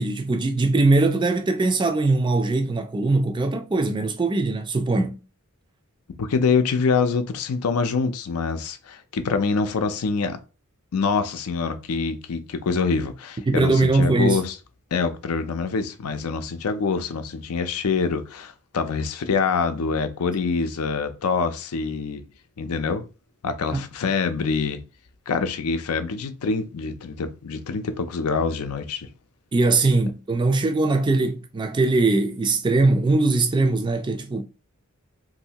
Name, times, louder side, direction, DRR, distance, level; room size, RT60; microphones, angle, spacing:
voice 1, 0.0-5.1 13.5-14.4 23.7-23.9 29.5-34.4, right 3 dB, 20° right, 0.4 m, -21 dB
voice 2, 6.2-10.4 10.9-14.6 14.9-22.2 22.6-23.0 23.4-24.8 25.3-29.1, left 5 dB, 85° left, 0.5 m, -25 dB
3.1 x 2.6 x 2.8 m
head